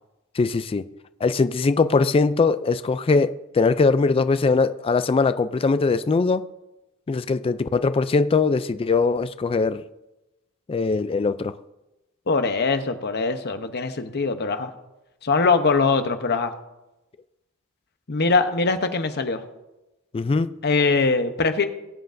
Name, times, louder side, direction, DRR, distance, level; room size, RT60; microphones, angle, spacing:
voice 1, 0.4-0.8 1.2-6.5 7.1-9.8 10.7-11.5 20.1-20.5, left 4 dB, 25° left, 0.3 m, -21 dB
voice 2, 12.3-14.7 15.2-16.5 18.1-19.4 20.6-21.7, left 4 dB, 50° left, 0.8 m, -22 dB
19.5 x 7.8 x 2.6 m
head